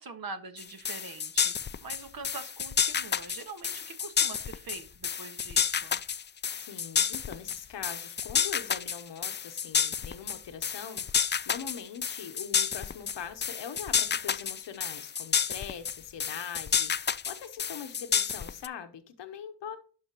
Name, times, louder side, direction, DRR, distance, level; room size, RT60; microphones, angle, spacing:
voice 1, 0.0-6.0, right 4 dB, 55° right, 8 dB, 1.6 m, -44 dB
sound 1, 0.6-18.7, left 7 dB, 30° left, 0.4 m, -30 dB
voice 2, 6.6-19.8, left 8 dB, 90° left, 7 dB, 0.9 m, -42 dB
11.5 x 4.0 x 2.9 m, 0.38 s
cardioid pair, 55°, 42 cm